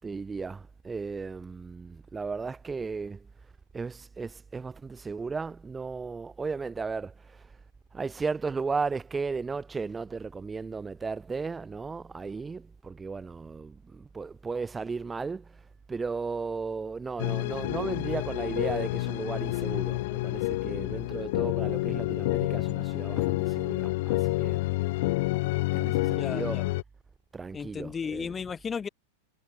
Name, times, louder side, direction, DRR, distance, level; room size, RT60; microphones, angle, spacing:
voice 1, 0.0-3.3 3.7-7.5 7.9-15.6 15.9-24.6 25.7-26.7 27.3-28.4, right 4 dB, 10° right, 1.7 m, -35 dB
sound 1, 17.2-26.8, left 21 dB, 55° left, 0.5 m, -29 dB
voice 2, 26.2-26.6 27.5-28.9, left 6 dB, 15° left, 2.6 m, -34 dB
supercardioid pair, 155°, 0 cm